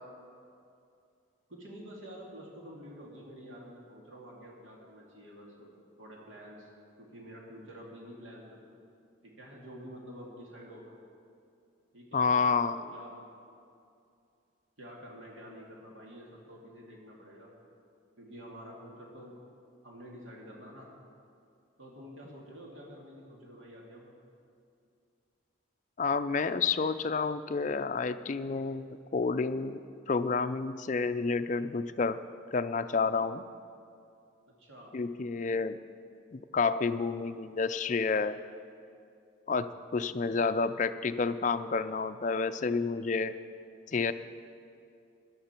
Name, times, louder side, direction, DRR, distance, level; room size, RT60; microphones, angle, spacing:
voice 1, 1.5-5.7 6.0-6.7 7.0-8.6 9.2-11.0 11.9-13.2 14.8-17.5 18.2-19.4 19.8-20.9 21.8-24.1 34.6-34.9, equal, 80° right, -3 dB, 2.4 m, -48 dB
voice 2, 12.1-12.8 26.0-29.8 30.1-32.2 32.5-33.4 34.9-35.8 36.3-38.4 39.5-43.3 43.9-44.1, left 4 dB, 40° left, 12 dB, 0.4 m, -29 dB
18.5 x 12.0 x 4.4 m, 2.5 s
head